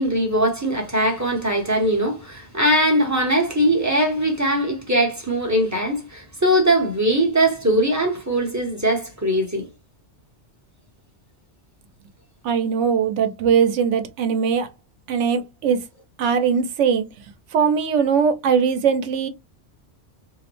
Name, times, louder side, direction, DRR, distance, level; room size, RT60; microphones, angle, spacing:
voice 1, 0.0-9.7, right 1 dB, 15° right, 0.7 m, -21 dB
voice 2, 12.4-14.7 15.1-15.8 16.2-17.1 17.5-19.3, right 6 dB, 90° right, 0.9 m, -20 dB
2.7 x 2.0 x 2.9 m
omnidirectional pair, 1.2 m